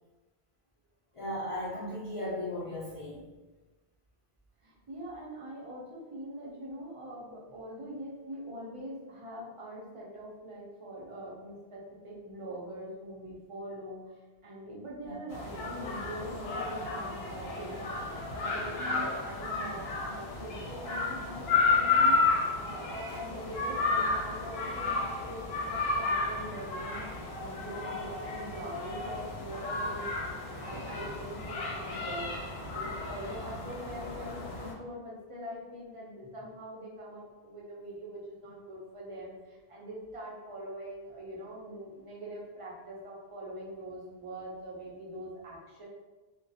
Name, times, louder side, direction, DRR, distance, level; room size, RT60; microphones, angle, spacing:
voice 1, 1.1-3.3 15.0-15.2 18.8-19.0, left 1 dB, 40° left, -9 dB, 0.5 m, -37 dB
voice 2, 4.6-17.9 18.3-27.0 27.3-30.3 30.6-45.9, equal, 40° right, -5 dB, 0.5 m, -43 dB
sound 1, 15.3-34.7, left 3 dB, 80° left, 0.8 m, -32 dB
2.3 x 2.2 x 2.6 m, 1.2 s
omnidirectional pair, 1.0 m